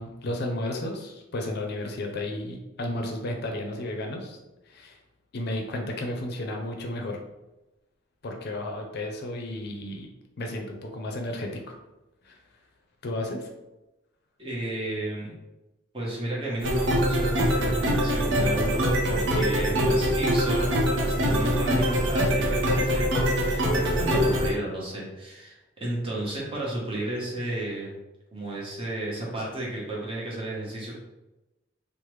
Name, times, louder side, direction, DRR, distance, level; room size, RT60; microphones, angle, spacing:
voice 1, 0.0-4.4 4.7-5.0 5.3-7.2 8.2-10.1 10.4-11.8 12.2-12.4 13.0-13.5, left 1 dB, 60° left, 2 dB, 0.5 m, -33 dB
voice 2, 14.4-15.3 15.9-27.9 28.3-31.0, right 1 dB, 30° right, -4 dB, 0.9 m, -32 dB
sound 1, 16.6-24.5, equal, 85° right, 0.7 m, -24 dB
3.2 x 2.0 x 3.1 m, 1.0 s
head